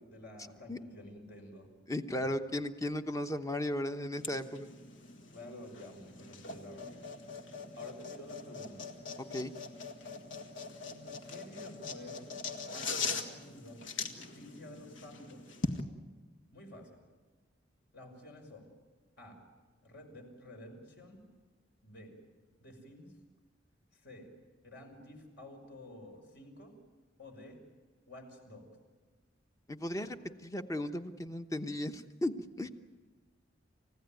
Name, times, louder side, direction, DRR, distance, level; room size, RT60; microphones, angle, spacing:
voice 1, 0.0-1.7 2.2-2.3 5.3-7.0 7.8-8.9 10.9-12.4 12.7-15.5 16.5-17.0 17.9-18.7 19.2-19.4 19.8-21.2 21.8-22.1 22.6-23.1 23.9-24.3 24.6-26.7 27.2-27.6 28.1-28.6, left 1 dB, 60° left, 3 dB, 5.6 m, -51 dB
voice 2, 1.9-4.7 9.3-9.5 29.7-32.7, left 1 dB, 15° left, 8 dB, 1.0 m, -36 dB
sound 1, 4.2-15.8, left 4 dB, 75° left, 1.9 m, -42 dB
29.5 x 16.0 x 9.2 m, 1.4 s
head